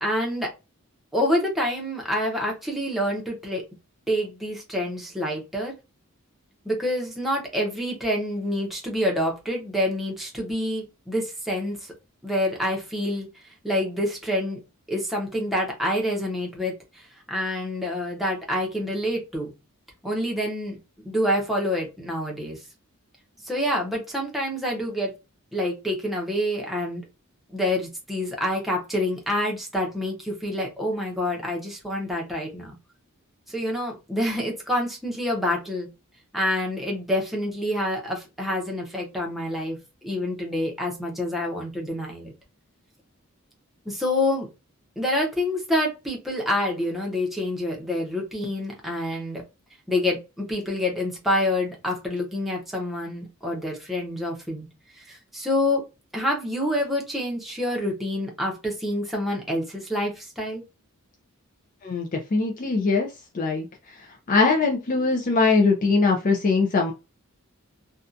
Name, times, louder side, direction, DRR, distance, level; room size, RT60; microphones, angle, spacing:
voice 1, 0.0-0.5 1.1-3.6 4.1-5.7 6.6-11.9 12.2-13.3 13.6-14.6 14.9-16.7 17.3-19.5 20.0-20.8 21.0-22.6 23.4-25.1 25.5-27.0 27.5-32.7 33.5-35.9 36.3-42.3 43.9-44.5 45.0-49.4 49.9-54.7 55.0-55.8 56.1-60.6, left 1 dB, ahead, -1 dB, 0.7 m, -27 dB
voice 2, 61.8-63.1 63.3-63.7 64.3-66.9, left 4 dB, 40° left, 1 dB, 0.4 m, -21 dB
2.6 x 2.2 x 2.5 m, 0.27 s
head